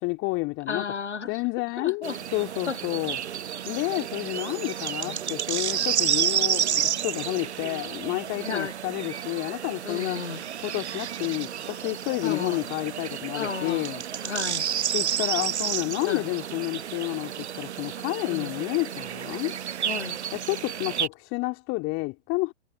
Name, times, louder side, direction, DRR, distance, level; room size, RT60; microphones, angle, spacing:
voice 1, 0.0-0.9 1.3-3.2 3.6-10.2 10.6-14.0 14.9-19.6 20.3-22.5, left 25 dB, 40° left, 3.1 m, -30 dB
voice 2, 0.7-1.4 1.8-2.2 2.7-2.8 5.0-5.2 8.4-8.7 9.8-10.4 12.2-12.6 13.3-13.9 14.2-14.7 16.1-16.2 18.3-18.5 19.8-20.2, left 5 dB, 85° left, 1.0 m, -33 dB
sound 1, 2.0-21.1, right 9 dB, 75° right, 0.7 m, -31 dB
figure-of-eight pair, 100°, 34 cm